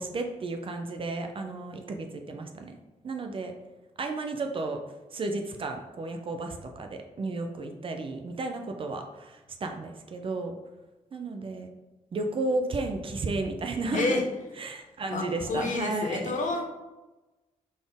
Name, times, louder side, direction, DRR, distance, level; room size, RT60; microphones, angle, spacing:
voice 1, 0.0-2.8 3.0-3.5 4.0-4.8 5.1-10.6 11.1-11.7 12.1-14.1 14.6-16.3, right 3 dB, 40° right, 5 dB, 0.5 m, -33 dB
voice 2, 13.9-14.2 15.1-16.7, left 3 dB, 65° left, 0 dB, 0.9 m, -29 dB
4.1 x 3.7 x 3.5 m, 1.1 s
wide cardioid pair, 160°, 14 cm